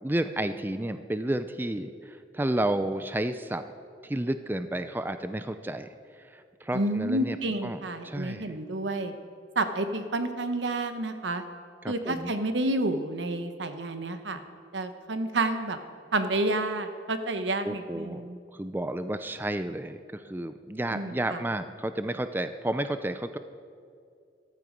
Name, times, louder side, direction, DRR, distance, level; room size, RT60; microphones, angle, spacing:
voice 1, 0.0-3.6 4.0-5.9 6.3-7.4 7.6-8.5 11.8-12.3 17.6-18.2 18.5-23.4, right 1 dB, 10° right, 10 dB, 0.4 m, -31 dB
voice 2, 6.7-9.1 9.5-11.4 11.9-14.4 14.7-15.8 16.1-18.4 20.9-21.4, right 2 dB, 85° right, 8 dB, 1.0 m, -29 dB
14.5 x 12.5 x 5.2 m, 2.4 s
head